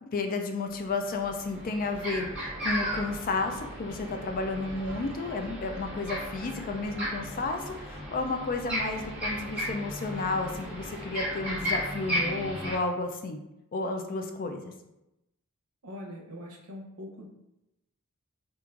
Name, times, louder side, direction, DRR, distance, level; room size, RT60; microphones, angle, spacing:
voice 1, 0.0-13.4 13.7-14.7, left 3 dB, 40° left, 5 dB, 0.3 m, -32 dB
sound 1, 0.7-0.8 1.2-12.7, equal, 5° right, 0.9 m, -35 dB
voice 2, 15.8-17.3, left 1 dB, 85° right, 0 dB, 0.7 m, -42 dB
4.5 x 2.4 x 2.4 m, 0.91 s
head